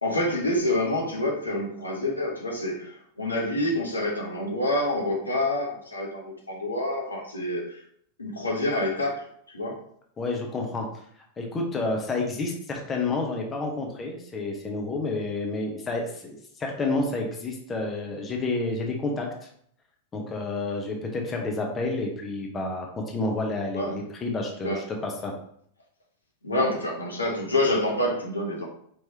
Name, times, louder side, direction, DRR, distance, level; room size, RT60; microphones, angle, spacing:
voice 1, 0.0-7.8 8.2-9.2 9.5-9.8 23.8-23.9 24.6-24.8 26.4-28.7, left 1 dB, 80° left, -1 dB, 0.9 m, -27 dB
voice 2, 10.2-10.9 11.4-19.3 20.1-25.3, left 2 dB, 20° left, 1 dB, 0.8 m, -30 dB
4.6 x 3.1 x 2.8 m, 0.65 s
figure-of-eight pair, 90°, 0 cm